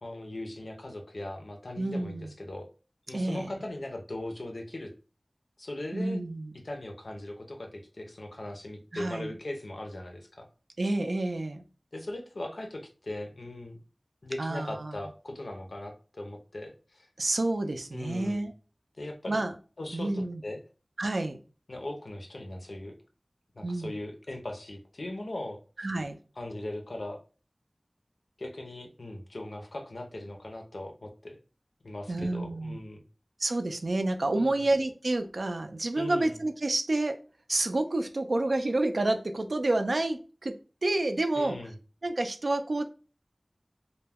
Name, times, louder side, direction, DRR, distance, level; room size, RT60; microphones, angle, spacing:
voice 1, 0.0-2.7 3.1-4.9 5.6-6.2 6.6-10.5 11.9-13.8 14.2-17.1 17.9-18.5 19.0-19.4 19.8-20.6 21.7-23.0 23.5-25.9 26.4-27.2 28.4-31.4 31.8-33.0 34.4-34.7 36.0-36.4 41.3-41.8, left 1 dB, 90° left, 3 dB, 0.5 m, -39 dB
voice 2, 1.8-2.3 3.1-3.5 5.9-6.5 8.9-9.3 10.8-11.6 14.4-14.9 17.2-18.5 19.3-19.5 19.9-20.4 21.0-21.4 23.6-23.9 25.8-26.2 32.1-32.8 33.4-37.2 37.5-40.5 40.8-41.6 42.0-42.8, right 2 dB, 85° right, 7 dB, 0.3 m, -29 dB
2.2 x 2.1 x 3.4 m, 0.36 s
wide cardioid pair, 55°, 0 cm